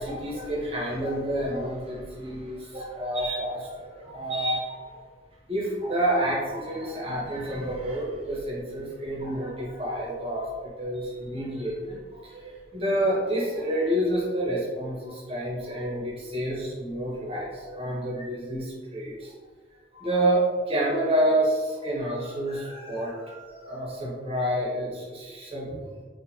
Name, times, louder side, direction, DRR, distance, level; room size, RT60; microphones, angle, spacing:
voice 1, 0.0-4.9 5.5-10.5 10.8-19.3 19.9-25.9, right 1 dB, 30° right, -5 dB, 1.0 m, -29 dB
4.3 x 2.4 x 2.8 m, 1.5 s
head